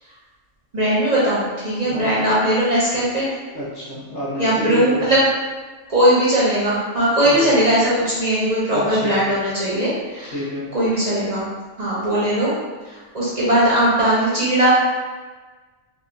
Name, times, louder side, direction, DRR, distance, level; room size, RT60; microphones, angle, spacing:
voice 1, 0.7-3.3 4.4-5.2 5.9-10.3 10.7-11.5 11.8-12.5 12.9-14.7, right 1 dB, 50° right, -8 dB, 0.5 m, -19 dB
voice 2, 1.8-2.3 3.5-5.2 7.2-7.6 8.7-9.2 10.3-10.7, left 1 dB, 45° left, -9 dB, 0.9 m, -29 dB
2.8 x 2.1 x 2.5 m, 1.3 s
omnidirectional pair, 1.3 m